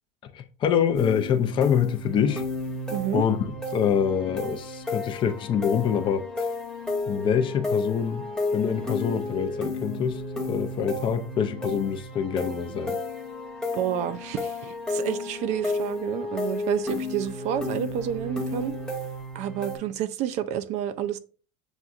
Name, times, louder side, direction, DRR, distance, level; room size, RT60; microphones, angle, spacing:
voice 1, 0.3-2.4 3.1-3.4 3.7-6.5 7.1-8.2 8.5-13.0, left 8 dB, 30° left, 0.4 m, -25 dB
sound 1, 0.9-19.8, left 2 dB, 5° left, 0.9 m, -32 dB
voice 2, 2.9-3.2 13.7-18.7 19.3-21.2, right 10 dB, 45° right, 0.4 m, -29 dB
7.0 x 2.6 x 2.4 m
cardioid pair, 155°, 17 cm